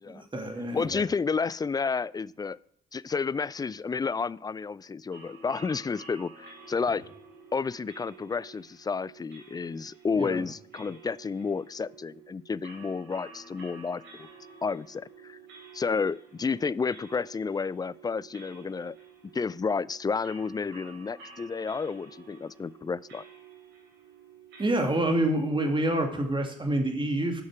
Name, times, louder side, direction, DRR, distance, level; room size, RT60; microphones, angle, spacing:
voice 1, 0.1-1.0 10.2-10.4 24.6-27.4, right 1 dB, 25° right, 4 dB, 2.4 m, -27 dB
voice 2, 0.7-2.6 2.9-7.0 7.5-14.3 14.6-15.4 15.7-19.0 19.2-23.2, left 5 dB, 20° left, 20 dB, 0.3 m, -31 dB
sound 1, 5.1-24.9, right 4 dB, 65° right, 3.4 m, -51 dB
12.0 x 6.5 x 4.8 m, 0.68 s
hypercardioid pair, 50°, 21 cm